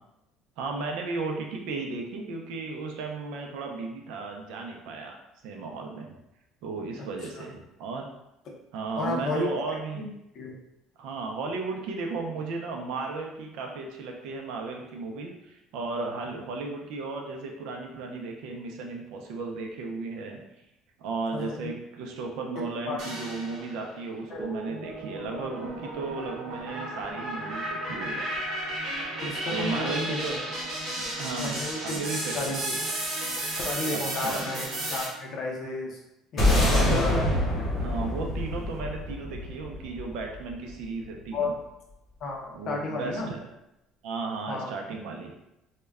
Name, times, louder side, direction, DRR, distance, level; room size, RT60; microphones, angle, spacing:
voice 1, 0.6-5.2 5.4-6.1 6.6-8.1 8.7-10.0 11.0-20.4 21.0-28.3 29.5-30.4 30.9-32.5 33.9-34.4 36.4-37.4 37.8-41.5 42.5-43.5 44.0-45.3, right 3 dB, 65° right, 2 dB, 0.4 m, -34 dB
voice 2, 9.0-9.5 9.9-10.1 10.3-10.6 21.3-21.7 22.6-23.0 24.3-24.5 29.2-30.3 31.4-32.0 32.3-32.8 33.5-34.6 34.9-36.0 36.3-37.2 41.3-41.5 42.2-43.3 44.5-44.7, left 2 dB, 40° left, -1 dB, 0.5 m, -32 dB
sound 1, 23.0-23.8 24.3-35.0, right 1 dB, 45° right, 0.8 m, -33 dB
sound 2, 36.4-40.8, left 1 dB, 25° left, 0.9 m, -26 dB
2.2 x 2.1 x 3.4 m, 0.88 s
cardioid pair, 175°, 0 cm